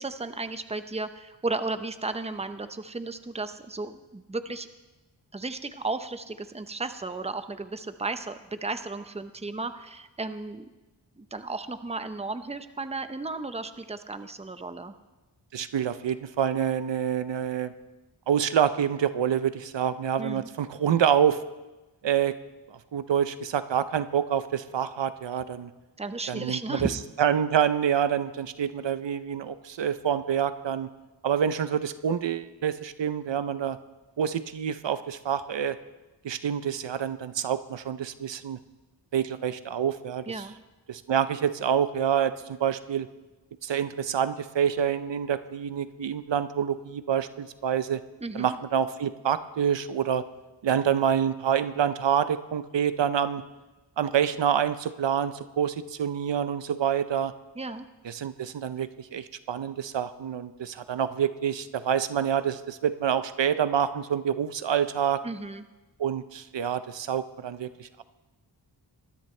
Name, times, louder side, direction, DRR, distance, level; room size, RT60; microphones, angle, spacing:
voice 1, 0.0-4.7 5.3-10.7 11.2-14.9 20.2-20.5 26.0-26.8 40.3-40.5 48.2-48.5 57.6-57.9 65.2-65.6, right 3 dB, 15° right, 10 dB, 0.8 m, -34 dB
voice 2, 15.5-17.7 18.3-21.4 22.0-22.3 22.7-25.7 26.3-26.9 27.2-30.9 31.2-33.8 34.2-35.8 36.2-38.6 39.1-40.5 40.9-43.1 43.6-48.0 48.3-50.2 50.6-53.4 54.0-57.3 58.0-65.2 66.0-68.0, right 8 dB, 75° right, 13 dB, 0.7 m, -27 dB
20.5 x 13.5 x 3.3 m, 1.1 s
wide cardioid pair, 70°, 44 cm